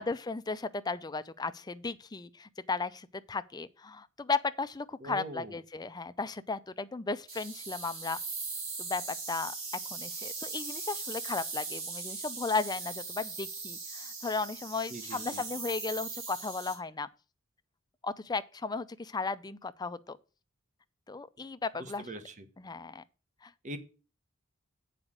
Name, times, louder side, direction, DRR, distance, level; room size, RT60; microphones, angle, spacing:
voice 1, 0.0-8.2 8.8-9.5 9.9-17.1 18.0-20.2 21.1-22.1 22.6-23.0 23.4-23.5, left 4 dB, 20° left, 0.5 m, -35 dB
voice 2, 5.0-5.5 14.9-15.4 21.8-22.5 23.6-23.8, right 2 dB, 35° right, 1.1 m, -42 dB
sound 1, 7.3-16.7, right 4 dB, 70° right, 4.2 m, -39 dB
7.9 x 5.0 x 7.4 m
head